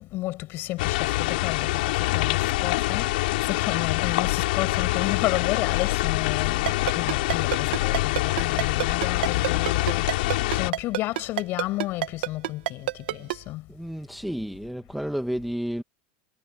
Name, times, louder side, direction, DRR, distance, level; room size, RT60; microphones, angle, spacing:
voice 1, 0.0-13.7, left 18 dB, 45° left, 5.9 m, -32 dB
sound 1, 0.8-10.7, left 19 dB, 75° left, 5.6 m, -25 dB
Ringtone, 6.7-13.3, right 14 dB, 85° right, 1.7 m, -26 dB
voice 2, 13.7-15.8, equal, ahead, 1.5 m, -31 dB
supercardioid pair, 145°, 5 cm